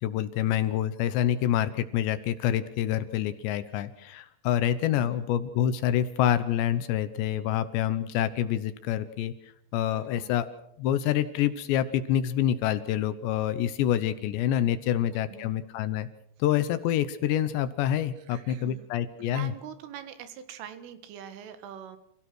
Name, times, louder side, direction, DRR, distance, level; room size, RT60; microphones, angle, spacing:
voice 1, 0.0-10.5 10.8-16.1 16.4-19.5, left 11 dB, 75° left, 13 dB, 2.9 m, -27 dB
voice 2, 4.8-5.3 9.9-10.5 14.9-15.6 18.2-18.9 19.2-22.0, right 9 dB, 85° right, 10 dB, 4.2 m, -44 dB
28.5 x 16.5 x 6.2 m, 0.73 s
omnidirectional pair, 5.5 m